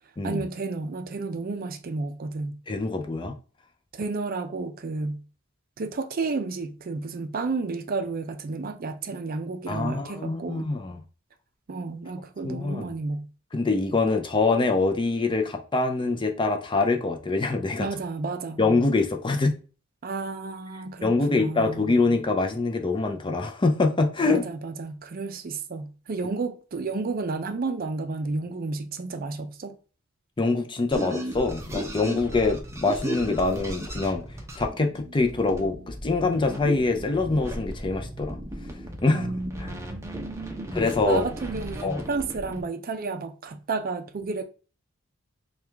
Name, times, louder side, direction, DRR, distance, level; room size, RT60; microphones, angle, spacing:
voice 1, 0.2-2.6 3.9-5.2 5.8-10.7 11.7-13.3 17.8-18.6 20.0-22.0 24.3-29.8 39.1-40.8 41.0-44.4, right 3 dB, 45° right, 0.4 m, -32 dB
voice 2, 2.7-3.4 9.7-11.0 12.4-12.9 13.5-17.9 18.6-19.6 21.0-24.5 30.4-34.2 34.6-38.4 39.0-39.3 39.6-39.7 40.7-41.2 41.8-42.0, left 3 dB, 25° left, 0.5 m, -24 dB
sound 1, 30.9-42.6, right 1 dB, 15° right, 0.7 m, -36 dB
4.7 x 2.3 x 3.4 m
head